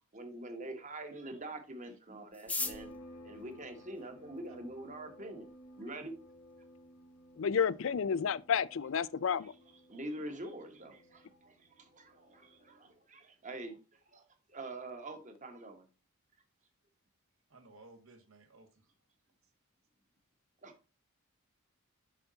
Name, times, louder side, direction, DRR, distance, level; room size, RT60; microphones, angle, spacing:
voice 1, 0.1-2.9 3.2-5.5 5.8-6.1 9.4-9.6 9.9-14.2 14.5-15.9 20.6-20.9, right 1 dB, 35° right, 1.4 m, -45 dB
sound 1, 2.3-4.6 5.4-5.5 5.7-5.8 6.0-6.5 6.9-7.0 7.1-7.6 7.9-8.1 8.4-8.7, left 3 dB, 5° left, 0.5 m, -40 dB
sound 2, 2.6-12.9, equal, 85° left, 1.7 m, -56 dB
voice 2, 7.4-9.5, left 6 dB, 60° left, 0.4 m, -31 dB
voice 3, 17.5-18.7, right 2 dB, 65° right, 1.6 m, -57 dB
7.0 x 5.9 x 4.0 m
head